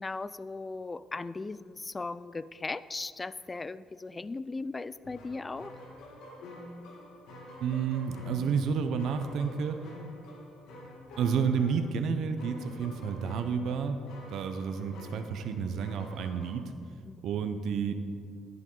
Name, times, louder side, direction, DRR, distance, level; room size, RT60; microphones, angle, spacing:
voice 1, 0.0-5.7 17.0-17.2, left 3 dB, 20° left, 16 dB, 0.3 m, -38 dB
sound 1, 5.0-16.5, left 1 dB, 80° left, 1.9 m, -48 dB
voice 2, 7.6-9.8 11.2-14.0 14.3-16.7 17.2-17.9, right 6 dB, 70° right, 7 dB, 0.7 m, -30 dB
11.0 x 11.0 x 3.8 m, 2.1 s
cardioid pair, 105°, 0 cm